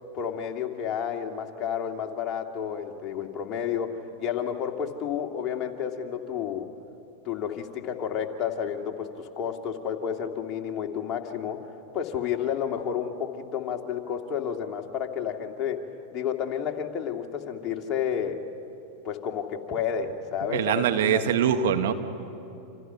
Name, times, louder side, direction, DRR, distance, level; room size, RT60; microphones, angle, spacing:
voice 1, 0.1-6.7 7.2-11.6 11.9-15.8 16.1-18.4 19.0-21.2, left 8 dB, 40° left, 2 dB, 2.5 m, -31 dB
voice 2, 20.4-21.9, right 9 dB, 65° right, 7 dB, 1.5 m, -23 dB
29.5 x 27.5 x 5.8 m, 2.8 s
hypercardioid pair, 90°, 0 cm